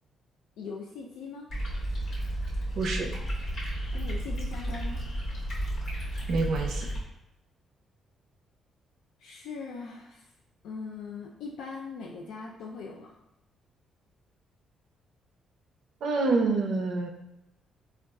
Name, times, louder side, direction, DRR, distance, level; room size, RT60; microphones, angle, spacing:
voice 1, 0.6-1.5 3.9-5.0 9.2-10.3 10.6-13.1, left 4 dB, 85° left, -1 dB, 0.3 m, -40 dB
sound 1, 1.5-7.0, right 1 dB, 65° left, 1.3 m, -32 dB
voice 2, 2.7-3.1 6.3-6.9 16.0-17.1, right 3 dB, 70° right, 2 dB, 0.4 m, -27 dB
3.9 x 2.3 x 2.3 m, 0.89 s
cardioid pair, 90°, 0 cm